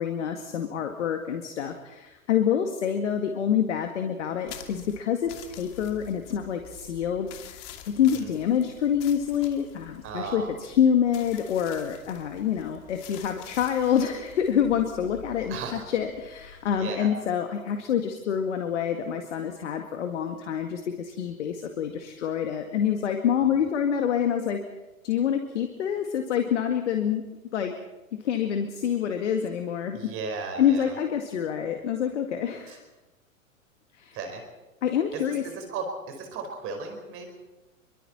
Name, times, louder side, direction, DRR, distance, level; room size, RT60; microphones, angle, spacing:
voice 1, 0.0-15.6 15.9-24.6 25.0-27.2 27.5-27.7 28.2-30.0 30.6-32.8 33.9-34.2 34.8-35.4, left 8 dB, 55° left, 5 dB, 2.1 m, -27 dB
sound 1, 4.5-16.9, left 10 dB, 35° left, 2.7 m, -47 dB
voice 2, 10.0-10.5 15.5-15.9 16.7-17.1 29.9-31.0 32.7-32.8 34.1-34.4 35.1-37.3, right 4 dB, 30° right, 4 dB, 5.1 m, -35 dB
28.5 x 24.0 x 4.4 m, 1.1 s
figure-of-eight pair, 105°, 41 cm